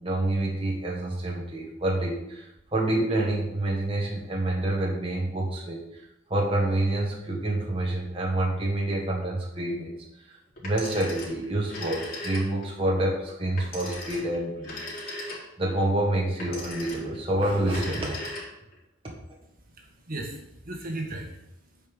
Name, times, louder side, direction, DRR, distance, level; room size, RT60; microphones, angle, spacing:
voice 1, 0.0-6.0 6.3-10.0 10.3-10.4 10.6-14.8 15.6-18.3 19.0-19.1, right 1 dB, 30° right, -2 dB, 1.6 m, -27 dB
Telephone, 10.6-12.8 13.6-15.7 16.4-17.2 17.6-18.8, left 1 dB, 50° left, 3.7 m, -38 dB
voice 2, 19.4-21.9, right 2 dB, 45° right, 1 dB, 1.8 m, -38 dB
8.9 x 5.4 x 7.3 m, 0.82 s
head